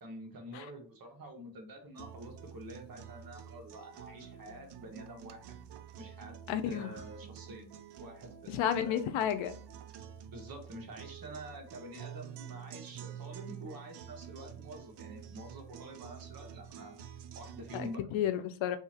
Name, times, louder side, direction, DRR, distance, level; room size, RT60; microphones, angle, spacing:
voice 1, 0.0-5.5 6.0-6.3 6.6-7.7 8.0-9.1 10.3-17.0 17.3-18.0, right 1 dB, 50° right, 1.0 m, -47 dB
sound 1, 1.9-17.9, right 9 dB, 65° right, 0.5 m, -48 dB
voice 2, 6.5-7.0 8.5-9.6 17.7-18.8, left 10 dB, 90° left, 0.6 m, -32 dB
2.8 x 2.4 x 4.1 m
cardioid pair, 120°, 46 cm